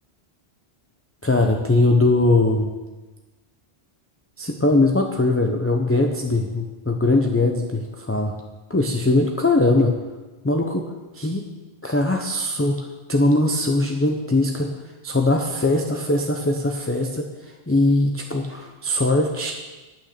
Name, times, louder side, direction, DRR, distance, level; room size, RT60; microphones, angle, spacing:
voice 1, 1.2-2.7 4.4-8.4 8.7-9.9 10.4-10.8 11.1-11.5 11.8-14.8 15.0-19.5, left 2 dB, 15° left, 2 dB, 0.7 m, -21 dB
9.0 x 9.0 x 6.7 m, 1.2 s
omnidirectional pair, 1.1 m